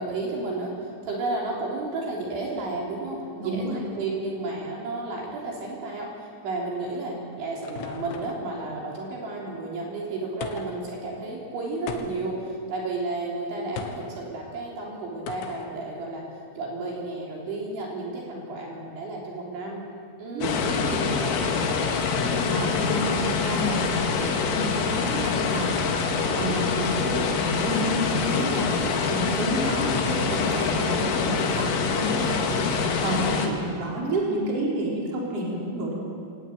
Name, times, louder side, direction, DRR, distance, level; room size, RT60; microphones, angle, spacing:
voice 1, 0.0-16.2 16.6-19.8 20.2-20.5 20.9-21.4, right 2 dB, 65° right, -3 dB, 5.8 m, -32 dB
voice 2, 3.4-3.8 20.3-21.0 22.1-23.9 24.2-25.8 26.3-28.7 29.0-32.7 33.0-35.9, right 1 dB, 30° right, -3 dB, 5.2 m, -30 dB
sound 1, 7.0-8.5 10.4-10.9 11.9-12.4 13.8-14.1 15.3-15.7, left 6 dB, 70° left, 3.4 m, -38 dB
sound 2, 20.4-33.5, left 5 dB, 85° left, 4.6 m, -25 dB
25.5 x 18.0 x 9.3 m, 2.4 s
omnidirectional pair, 5.8 m